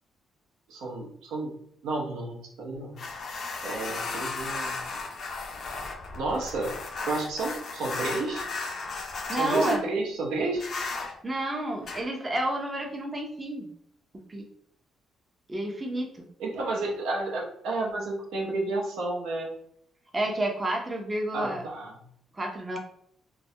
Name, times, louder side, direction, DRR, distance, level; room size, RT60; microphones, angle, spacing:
voice 1, 0.7-1.5 1.8-3.0 3.6-4.8 6.1-6.7 7.1-8.5 9.3-10.6 16.4-19.5 21.3-21.9, right 2 dB, 85° right, -1 dB, 0.6 m, -31 dB
sound 1, 3.0-9.8 10.6-11.1 11.8-12.0, left 3 dB, 55° left, 0.4 m, -35 dB
voice 2, 9.3-9.8 11.2-13.7 14.3-14.4 15.5-16.1 20.1-21.6 22.3-22.8, right 1 dB, 20° right, 0 dB, 0.5 m, -30 dB
2.2 x 2.1 x 2.7 m, 0.67 s
cardioid pair, 90°, 0 cm